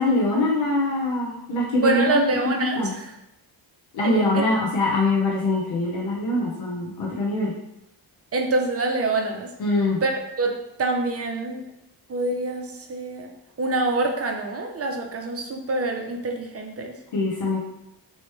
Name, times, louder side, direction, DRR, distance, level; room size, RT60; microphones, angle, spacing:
voice 1, 0.0-2.1 2.6-2.9 3.9-7.5 9.6-10.0 17.1-17.6, left 2 dB, 85° left, -4 dB, 0.9 m, -23 dB
voice 2, 1.8-3.1 4.0-4.5 8.3-9.5 10.0-11.6 12.1-13.3 13.6-16.9, right 2 dB, 35° right, 2 dB, 0.6 m, -26 dB
3.1 x 3.1 x 3.1 m, 0.85 s
cardioid pair, 90°, 44 cm